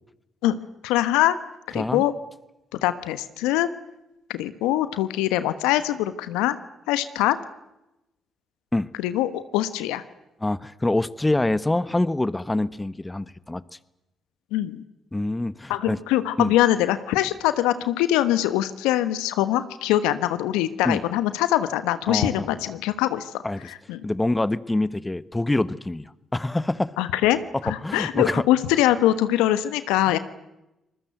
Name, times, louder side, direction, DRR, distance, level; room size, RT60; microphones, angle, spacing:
voice 1, 0.8-1.4 1.7-2.1 2.8-3.7 4.3-6.6 6.9-7.4 9.0-10.0 14.5-14.8 15.7-23.4 23.7-24.0 27.0-30.2, left 13 dB, 80° left, 13 dB, 1.2 m, -23 dB
voice 2, 10.4-13.6 15.1-16.0 16.4-16.5 20.8-21.0 22.1-22.5 23.4-23.7 24.0-26.0 26.3-26.9 27.5-28.4, left 2 dB, 15° left, 16 dB, 1.2 m, -25 dB
26.0 x 21.0 x 8.0 m, 0.92 s
hypercardioid pair, 45°, 0 cm